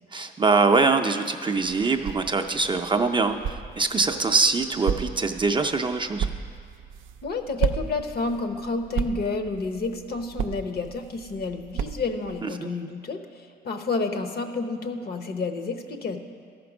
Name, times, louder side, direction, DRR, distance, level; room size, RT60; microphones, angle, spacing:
voice 1, 0.1-6.3 12.4-12.7, right 4 dB, 25° right, 5 dB, 0.5 m, -23 dB
sound 1, 1.5-12.4, right 7 dB, 80° right, 0.5 m, -34 dB
voice 2, 7.2-16.2, left 3 dB, 50° left, 7 dB, 0.9 m, -30 dB
13.0 x 5.2 x 6.0 m, 2.1 s
cardioid pair, 90°, 20 cm